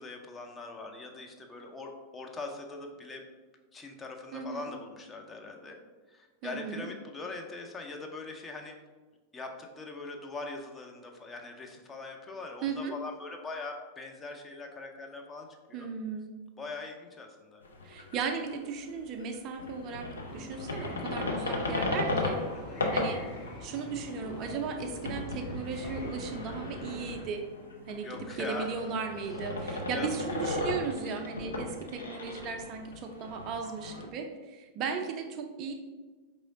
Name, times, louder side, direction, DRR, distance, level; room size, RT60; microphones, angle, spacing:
voice 1, 0.0-3.2 3.7-5.8 6.1-8.7 9.3-15.9 16.6-17.6 22.5-22.9 28.0-28.7 29.7-30.5, left 3 dB, 15° left, 2 dB, 0.5 m, -42 dB
voice 2, 4.3-4.7 6.4-6.9 12.6-12.9 15.7-16.3 17.8-22.4 22.9-23.2 23.6-27.4 27.9-35.7, right 5 dB, 40° right, 5 dB, 0.4 m, -36 dB
sound 1, 17.6-18.9 19.2-34.1, left 2 dB, 70° left, 0.6 m, -36 dB
sound 2, 20.3-27.1, left 1 dB, 50° left, 1.4 m, -45 dB
4.8 x 3.0 x 2.6 m, 1.3 s
figure-of-eight pair, 90°, 0 cm